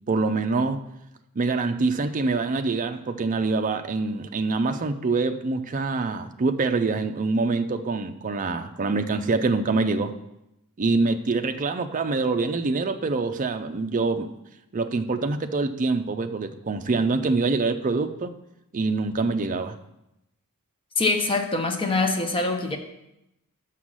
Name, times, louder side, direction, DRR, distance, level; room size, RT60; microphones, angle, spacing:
voice 1, 0.1-0.8 1.4-10.1 10.8-14.3 14.7-18.3 18.7-19.8, right 3 dB, 35° right, 7 dB, 0.5 m, -25 dB
voice 2, 21.0-22.8, left 3 dB, 25° left, 3 dB, 0.8 m, -24 dB
6.0 x 5.7 x 6.2 m, 0.87 s
head